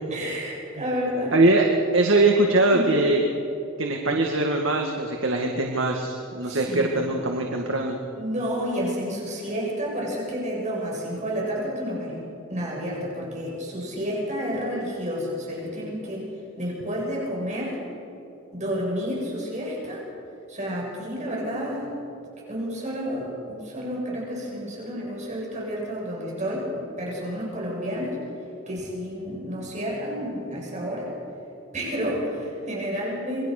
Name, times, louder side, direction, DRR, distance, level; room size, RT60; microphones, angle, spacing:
voice 1, 0.1-1.4 2.7-2.9 6.4-7.1 8.2-12.2 12.5-16.2 16.6-17.8 18.5-20.0 20.5-22.0 22.5-28.2 28.7-31.1 31.7-33.5, equal, 40° right, -3 dB, 7.4 m, -30 dB
voice 2, 1.3-1.7 1.9-3.2 3.8-8.0, right 2 dB, 75° right, 1 dB, 2.0 m, -22 dB
27.5 x 22.0 x 6.7 m, 2.7 s
head